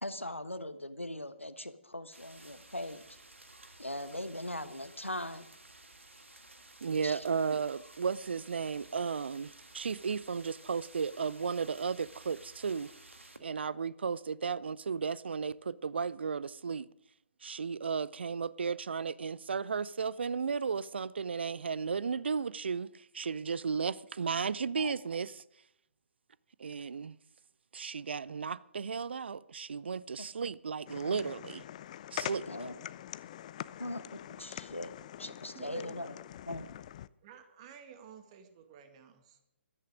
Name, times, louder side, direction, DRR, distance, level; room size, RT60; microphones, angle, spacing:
voice 1, 0.0-3.0 3.8-5.5 7.0-7.2 24.8-24.9 30.2-30.3 32.5-32.7 33.8-34.9 35.2-36.1 36.5-36.8, left 1 dB, 90° left, 1.3 m, -40 dB
sound 1, 2.1-13.4, right 2 dB, 80° right, 1.9 m, -55 dB
voice 2, 6.8-12.9 13.4-16.9 17.4-25.4 26.6-27.2 27.7-31.6 32.1-32.7, right 5 dB, 60° right, 0.6 m, -34 dB
sound 2, 30.9-37.1, left 11 dB, 35° left, 0.5 m, -44 dB
voice 3, 35.5-36.3 37.2-39.4, right 7 dB, 30° right, 2.1 m, -52 dB
15.0 x 13.5 x 5.1 m
figure-of-eight pair, 130°, 7 cm